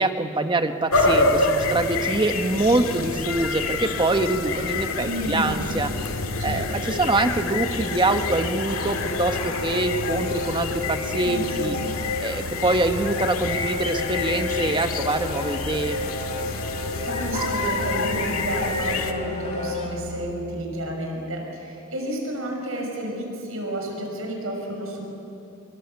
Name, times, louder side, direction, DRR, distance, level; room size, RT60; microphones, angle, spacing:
voice 1, 0.0-5.9 6.4-11.8 12.2-16.0, right 2 dB, 20° right, 7 dB, 1.1 m, -24 dB
sound 1, 0.9-19.1, left 3 dB, 85° left, 1.9 m, -27 dB
voice 2, 5.0-5.6 6.4-6.9 11.2-11.8 16.5-25.1, right 1 dB, 80° right, 1 dB, 6.3 m, -31 dB
sound 2, 7.4-20.0, left 3 dB, 35° left, 3.3 m, -33 dB
sound 3, 8.0-20.3, left 1 dB, 70° left, 1.3 m, -39 dB
25.5 x 23.5 x 8.3 m, 2.9 s
head